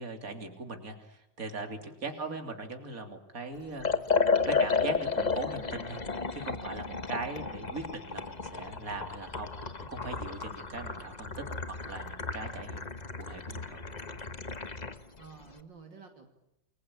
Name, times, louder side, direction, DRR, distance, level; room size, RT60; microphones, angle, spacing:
voice 1, 0.0-3.9 4.5-6.0 6.3-12.9 13.2-13.8, right 3 dB, 45° right, 5 dB, 3.6 m, -40 dB
voice 2, 1.8-2.4 6.9-7.0 15.2-16.3, right 5 dB, 65° right, 3 dB, 3.3 m, -51 dB
Liquid, 3.8-15.0, left 4 dB, 25° left, 1.1 m, -33 dB
29.0 x 21.5 x 8.7 m, 0.85 s
omnidirectional pair, 2.2 m